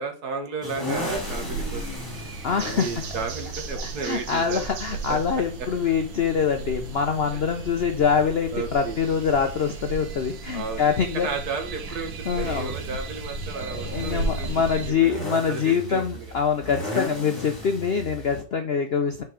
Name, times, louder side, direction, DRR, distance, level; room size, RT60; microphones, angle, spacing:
voice 1, 0.0-2.2 2.7-4.7 5.1-5.7 7.3-7.4 8.5-9.0 10.5-16.3, right 4 dB, 55° right, 5 dB, 1.6 m, -34 dB
sound 1, 0.6-18.4, equal, 10° left, 2.1 m, -38 dB
sound 2, 0.9-14.9, right 3 dB, 85° right, 1.8 m, -35 dB
voice 2, 2.4-2.9 4.0-11.3 12.3-12.7 13.7-19.2, left 6 dB, 80° left, 6 dB, 0.5 m, -24 dB
5.8 x 4.6 x 5.0 m, 0.38 s
omnidirectional pair, 2.1 m